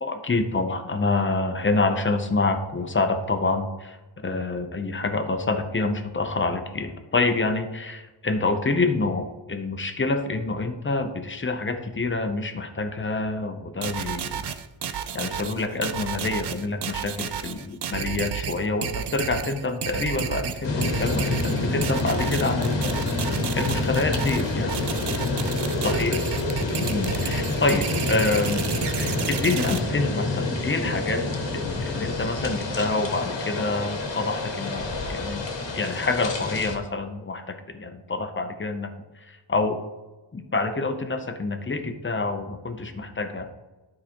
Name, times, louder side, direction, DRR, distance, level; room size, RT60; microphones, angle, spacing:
voice 1, 0.0-14.5 15.1-24.8 25.8-26.2 26.8-28.7 29.0-31.2 31.5-35.4 35.8-38.9 39.2-39.8 40.3-43.5, left 3 dB, 25° left, 7 dB, 0.7 m, -27 dB
sound 1, 13.8-29.8, right 8 dB, 65° right, 0.6 m, -31 dB
sound 2, 20.6-36.8, left 2 dB, 80° left, 1.2 m, -28 dB
12.0 x 4.8 x 2.9 m, 1.2 s
wide cardioid pair, 125°, 44 cm